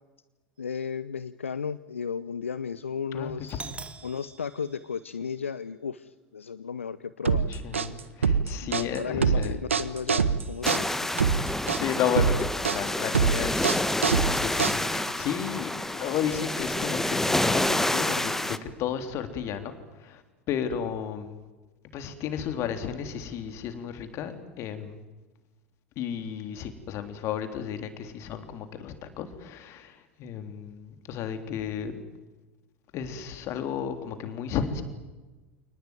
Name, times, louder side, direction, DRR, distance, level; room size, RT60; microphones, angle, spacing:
voice 1, 0.6-3.7 4.0-7.5 8.6-11.1, left 6 dB, 75° left, 15 dB, 0.8 m, -34 dB
voice 2, 3.1-3.8 7.3-9.6 11.5-19.7 20.0-20.2 20.5-21.4 21.9-25.0 25.9-32.0 32.9-34.8, left 8 dB, 40° left, 8 dB, 3.5 m, -33 dB
Doorbell, 3.5-5.5, right 5 dB, 15° right, 1.7 m, -45 dB
sound 1, 7.3-15.1, right 6 dB, 75° right, 1.3 m, -25 dB
sound 2, 10.6-18.6, left 1 dB, 5° left, 1.4 m, -28 dB
29.0 x 19.5 x 9.2 m, 1.2 s
figure-of-eight pair, 80°, 7 cm